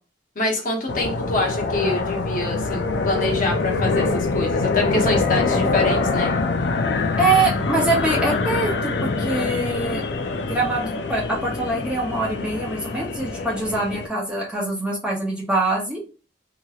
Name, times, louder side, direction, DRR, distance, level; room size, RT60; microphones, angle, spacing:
voice 1, 0.4-6.3, left 2 dB, 45° left, 0 dB, 0.8 m, -25 dB
sound 1, 0.9-14.1, left 3 dB, 60° left, 0.4 m, -24 dB
voice 2, 7.2-10.0 10.4-16.0, right 2 dB, 5° right, -3 dB, 0.6 m, -24 dB
2.9 x 2.8 x 2.3 m, 0.34 s
head